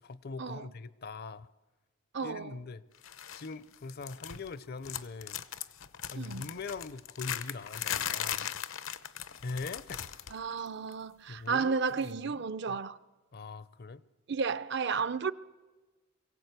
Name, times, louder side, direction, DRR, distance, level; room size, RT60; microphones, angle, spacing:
voice 1, 0.0-1.5 2.2-2.8 3.3-5.4 6.1-8.5 9.4-10.2 11.3-12.8 13.3-14.0, left 3 dB, 50° left, 0.6 m, -42 dB
voice 2, 2.1-2.6 6.2-6.5 10.3-13.0 14.3-15.3, right 5 dB, 55° right, 0.6 m, -33 dB
sound 1, 3.0-3.5 3.7-4.6 4.8-10.4 10.7-10.9 12.0-12.1, left 10 dB, 75° left, 0.8 m, -38 dB
23.0 x 16.5 x 8.1 m
head